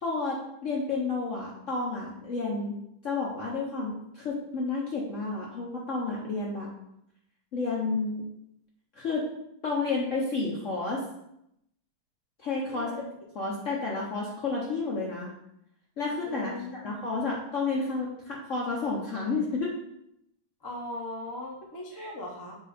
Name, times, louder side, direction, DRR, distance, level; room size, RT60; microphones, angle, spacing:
voice 1, 0.0-2.8 3.0-6.7 7.5-8.3 8.9-9.2 9.6-11.0 12.4-12.9 13.3-15.3 16.0-19.7 21.9-22.1, left 3 dB, 55° left, -3 dB, 0.9 m, -31 dB
voice 2, 12.7-13.1 16.2-16.9 20.6-22.6, left 1 dB, 20° left, -2 dB, 0.6 m, -39 dB
7.2 x 2.8 x 5.0 m, 0.79 s
omnidirectional pair, 2.3 m